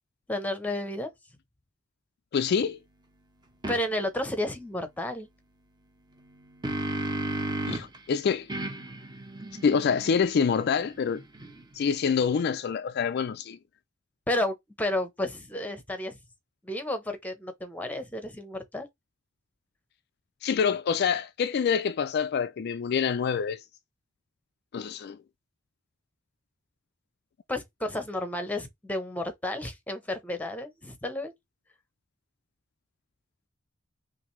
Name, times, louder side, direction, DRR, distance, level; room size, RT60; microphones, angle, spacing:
voice 1, 0.3-1.1 3.7-5.3 14.3-16.2 16.6-18.9 27.5-31.3, left 1 dB, 10° left, 0.9 m, -32 dB
voice 2, 2.3-2.8 7.7-8.5 9.6-11.2 11.7-13.6 20.4-23.6 24.7-25.2, left 6 dB, 55° left, 0.3 m, -26 dB
sound 1, 3.6-3.8 6.2-8.0 8.5-11.8, right 2 dB, 20° right, 0.9 m, -34 dB
5.8 x 2.6 x 3.1 m
head